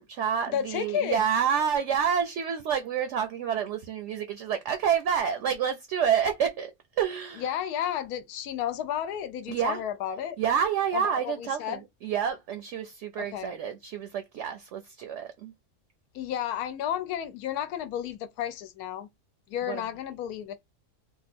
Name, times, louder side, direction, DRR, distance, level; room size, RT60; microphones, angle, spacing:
voice 1, 0.0-6.7 7.0-7.5 9.5-9.8 10.4-15.5 19.7-19.8, right 8 dB, 65° right, 0.7 m, -28 dB
voice 2, 0.5-1.2 7.4-10.4 10.9-11.8 13.2-13.6 16.1-19.1 19.5-20.6, left 10 dB, 85° left, 1.1 m, -32 dB
2.9 x 2.3 x 4.1 m
omnidirectional pair, 1.6 m